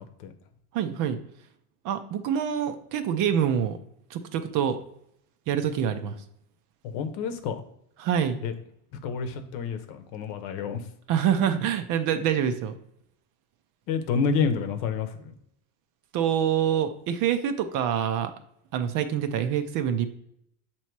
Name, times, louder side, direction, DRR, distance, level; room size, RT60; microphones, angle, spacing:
voice 1, 0.7-1.2 1.8-3.8 4.1-4.8 5.5-6.1 8.0-8.4 11.1-12.7 16.1-18.3 18.7-20.1, right 9 dB, 45° right, 9 dB, 0.6 m, -26 dB
voice 2, 6.8-7.6 8.4-8.5 9.0-10.8 13.9-15.3, left 5 dB, 55° left, 8 dB, 0.9 m, -29 dB
6.9 x 2.9 x 4.6 m, 0.74 s
supercardioid pair, 130°, 45 cm